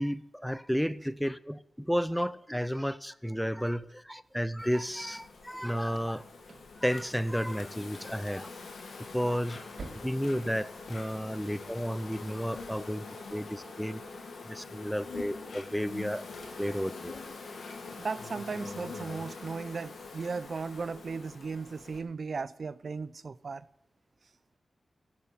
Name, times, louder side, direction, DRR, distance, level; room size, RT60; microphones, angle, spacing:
voice 1, 0.0-6.2 6.8-8.5 9.1-9.6 10.0-14.0 14.4-16.3 16.6-17.2, equal, ahead, 0.6 m, -32 dB
sound 1, 4.2-11.4, right 3 dB, 85° right, 2.9 m, -53 dB
Insect, 4.6-22.0, left 3 dB, 90° left, 2.1 m, -44 dB
voice 2, 18.0-23.6, right 4 dB, 60° right, 0.5 m, -36 dB
14.5 x 7.5 x 8.6 m
wide cardioid pair, 85°, 0 cm